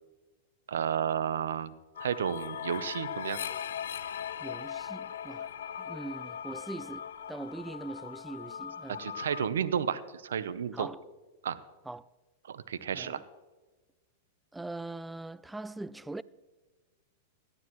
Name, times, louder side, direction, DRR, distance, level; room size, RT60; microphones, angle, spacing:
voice 1, 0.7-1.7 2.0-3.4 8.9-10.9 11.4-11.6 12.5-13.2, right 8 dB, 85° right, 0.7 m, -32 dB
sound 1, 2.0-9.5, left 8 dB, 85° left, 0.6 m, -39 dB
voice 2, 4.4-9.0 10.7-11.0 11.9-12.1 12.9-13.2 14.5-16.2, right 2 dB, 5° right, 0.3 m, -42 dB
17.5 x 12.0 x 3.1 m
hypercardioid pair, 120°, 0 cm